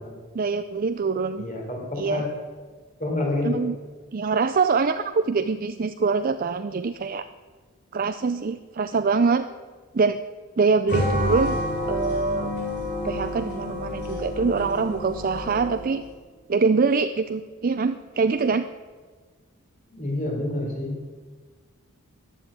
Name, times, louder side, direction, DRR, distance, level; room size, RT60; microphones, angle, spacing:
voice 1, 0.3-1.5 2.0-2.2 3.4-3.8 4.1-7.3 7.9-9.5 9.9-10.2 10.6-11.6 11.9-12.5 13.0-16.0 16.5-18.7, right 4 dB, 40° right, 10 dB, 0.5 m, -24 dB
voice 2, 1.4-2.3 3.0-3.6 19.9-21.0, left 2 dB, 35° left, 1 dB, 4.0 m, -28 dB
sound 1, 10.9-16.0, equal, 55° left, 3.6 m, -29 dB
14.5 x 10.0 x 9.0 m, 1.4 s
head